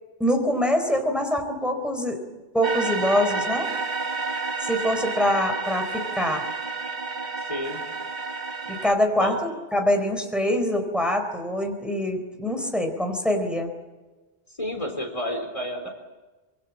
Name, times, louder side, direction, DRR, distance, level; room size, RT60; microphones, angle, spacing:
voice 1, 0.2-2.2 2.5-3.7 4.6-6.4 8.7-13.7, equal, ahead, 4 dB, 4.1 m, -24 dB
sound 1, 2.6-8.9, right 4 dB, 40° right, 1.6 m, -30 dB
voice 2, 7.4-7.8 9.2-9.4 14.5-15.9, equal, 30° left, 4 dB, 3.9 m, -30 dB
26.0 x 25.0 x 7.4 m, 1.2 s
omnidirectional pair, 1.1 m